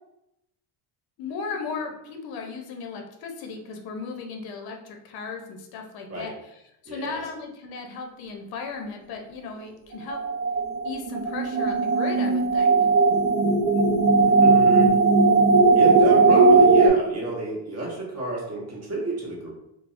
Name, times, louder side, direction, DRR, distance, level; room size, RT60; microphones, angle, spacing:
voice 1, 1.2-6.3 6.8-10.2 10.8-12.9, left 4 dB, 55° left, 3 dB, 0.6 m, -36 dB
voice 2, 6.9-7.2 14.4-14.9 15.8-19.5, right 2 dB, 35° right, -4 dB, 1.0 m, -30 dB
sound 1, 10.1-16.9, right 3 dB, 70° right, 0.5 m, -18 dB
3.3 x 2.0 x 2.4 m, 0.83 s
cardioid pair, 125°, 46 cm